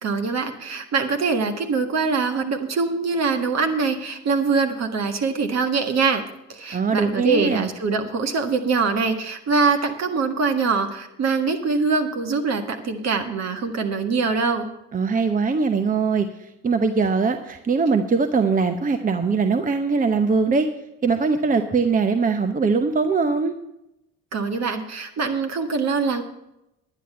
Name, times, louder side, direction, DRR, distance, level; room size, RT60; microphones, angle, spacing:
voice 1, 0.0-6.2 6.5-14.7 24.3-26.2, right 4 dB, 45° right, 6 dB, 1.6 m, -23 dB
voice 2, 6.7-7.7 14.9-20.7 21.0-23.5, right 4 dB, 20° right, 8 dB, 0.8 m, -21 dB
10.0 x 9.8 x 5.6 m, 0.87 s
figure-of-eight pair, 55°, 38 cm